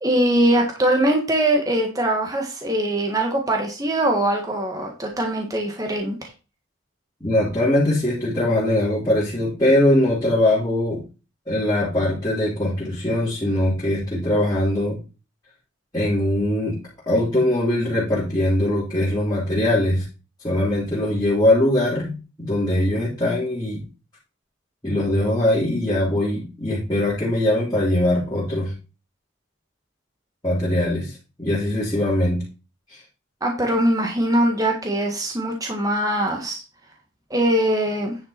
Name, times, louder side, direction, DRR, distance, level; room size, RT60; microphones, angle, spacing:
voice 1, 0.0-6.3 33.4-36.6 37.3-38.2, right 1 dB, 15° right, 1 dB, 1.6 m, -22 dB
voice 2, 7.2-11.0 11.5-15.0 15.9-16.8 17.1-20.0 20.4-23.8 24.8-28.7 30.4-32.4 32.9-33.0, left 1 dB, 20° left, -9 dB, 3.2 m, -21 dB
9.8 x 5.9 x 4.3 m, 0.31 s
head